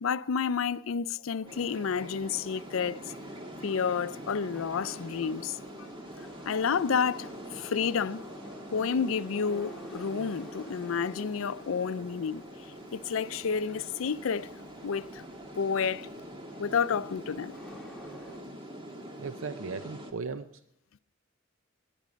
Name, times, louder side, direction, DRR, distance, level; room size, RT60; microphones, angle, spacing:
voice 1, 0.0-3.1 3.6-5.6 6.4-8.2 8.7-12.4 12.9-14.5 14.8-15.2 15.6-16.1 16.6-17.5, left 6 dB, 80° left, 0.4 m, -30 dB
Subway metro underground, 1.3-18.4, equal, ahead, 1.8 m, -51 dB
sound 1, 1.5-20.1, equal, 25° right, 1.6 m, -45 dB
voice 2, 19.2-20.5, right 5 dB, 75° right, 0.5 m, -36 dB
19.0 x 11.0 x 5.1 m
head